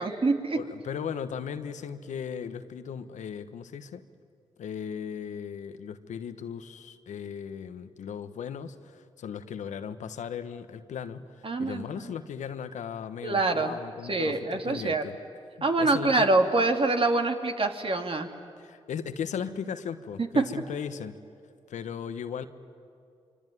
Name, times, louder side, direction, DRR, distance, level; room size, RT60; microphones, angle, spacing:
voice 1, 0.0-0.6 11.4-11.8 13.2-13.8 14.1-15.0 15.6-18.3 20.2-20.4, right 3 dB, 50° right, 4 dB, 2.8 m, -25 dB
voice 2, 0.5-4.0 4.6-15.2 15.6-16.3 18.6-21.2 21.7-22.5, left 7 dB, 80° left, 10 dB, 1.2 m, -37 dB
25.0 x 25.0 x 9.5 m, 2.4 s
supercardioid pair, 40°, 12 cm